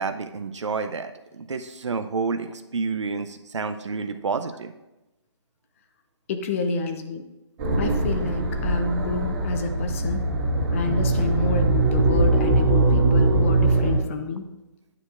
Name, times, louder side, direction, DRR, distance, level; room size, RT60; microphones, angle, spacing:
voice 1, 0.0-4.7, right 4 dB, 90° right, 8 dB, 0.5 m, -29 dB
voice 2, 6.3-7.3 7.8-10.2 10.7-14.5, left 3 dB, 30° left, 7 dB, 0.5 m, -28 dB
sound 1, 7.6-14.0, right 2 dB, 30° right, 1.7 m, -21 dB
9.6 x 6.5 x 2.5 m, 0.99 s
hypercardioid pair, 150°, 15 cm